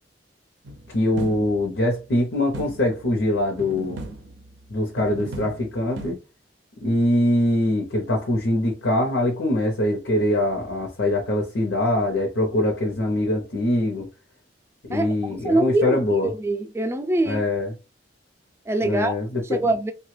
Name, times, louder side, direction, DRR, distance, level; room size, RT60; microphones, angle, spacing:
sound 1, 0.6-1.8 2.5-3.2 3.6-4.7 5.0-6.1, right 2 dB, 80° right, 0.5 m, -37 dB
voice 1, 0.9-4.0 4.7-6.2 6.8-14.1 14.9-16.3 17.3-17.7 18.8-19.4, left 1 dB, 90° left, 0.8 m, -23 dB
voice 2, 15.4-17.4 18.7-19.1 19.4-19.9, right 2 dB, 15° right, 0.4 m, -23 dB
2.8 x 2.3 x 3.2 m
head